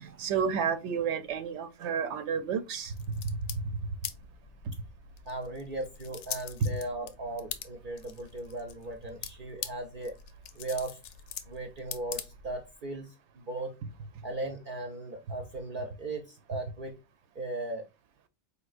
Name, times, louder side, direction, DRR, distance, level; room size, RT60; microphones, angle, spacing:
voice 1, 0.0-2.9 3.2-3.4 4.7-4.8, right 7 dB, 80° right, 0.9 m, -31 dB
sound 1, 2.8-12.8, left 8 dB, 65° left, 0.7 m, -44 dB
voice 2, 5.3-10.1 10.5-11.0 11.5-13.7 14.2-16.9 17.3-17.9, right 2 dB, 55° right, 0.7 m, -37 dB
4.6 x 3.5 x 2.4 m
omnidirectional pair, 1.2 m